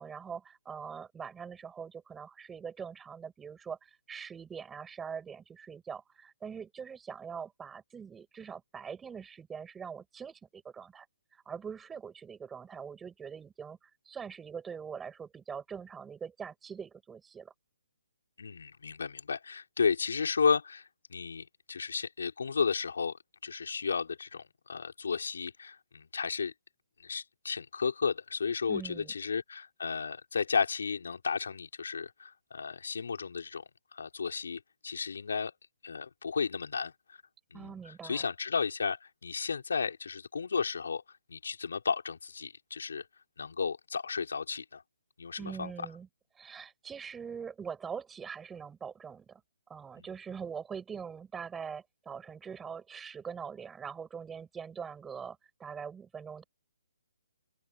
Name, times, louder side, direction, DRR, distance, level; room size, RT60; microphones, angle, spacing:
voice 1, 0.0-3.8 4.1-11.1 11.3-17.5 28.7-29.1 37.5-38.2 45.4-46.1 46.4-49.4 49.7-56.4, right 6 dB, 10° right, 7.6 m, -43 dB
voice 2, 18.4-23.2 23.4-26.5 27.0-33.6 33.9-35.5 35.8-36.9 37.5-37.7 38.0-41.0 41.3-43.0 43.4-44.8 45.2-45.7 50.0-50.1, left 5 dB, 80° left, 4.5 m, -33 dB
open air
hypercardioid pair, 165°, 0 cm